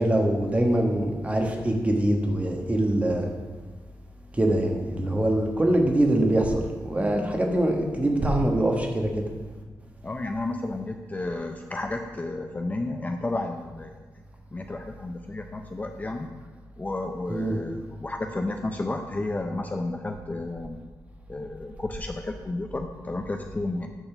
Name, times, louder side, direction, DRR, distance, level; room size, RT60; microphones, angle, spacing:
voice 1, 0.0-3.3 4.3-9.2 17.3-17.6, right 1 dB, 20° right, 2 dB, 1.3 m, -23 dB
voice 2, 10.0-14.0 14.5-16.3 16.8-20.8 21.3-23.9, left 2 dB, 20° left, 4 dB, 0.5 m, -32 dB
8.9 x 4.2 x 6.7 m, 1.3 s
wide cardioid pair, 105°, 7 cm